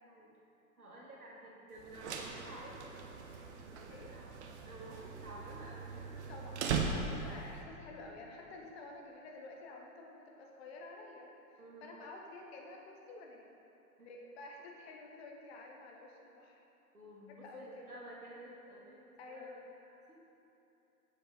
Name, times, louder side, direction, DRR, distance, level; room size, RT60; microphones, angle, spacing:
voice 1, 0.0-0.4 0.8-2.8 3.6-4.3 4.6-6.1 11.6-11.9 14.0-14.1 16.9-19.5 20.1-20.2, right 1 dB, 80° right, -4 dB, 1.7 m, -52 dB
sound 1, 1.8-7.5, right 5 dB, 50° right, 0.8 m, -40 dB
voice 2, 6.1-13.5 14.0-16.6 17.3-17.9 19.2-19.6, left 2 dB, 45° left, 0 dB, 1.1 m, -51 dB
7.0 x 6.6 x 3.9 m, 2.9 s
figure-of-eight pair, 100°, 44 cm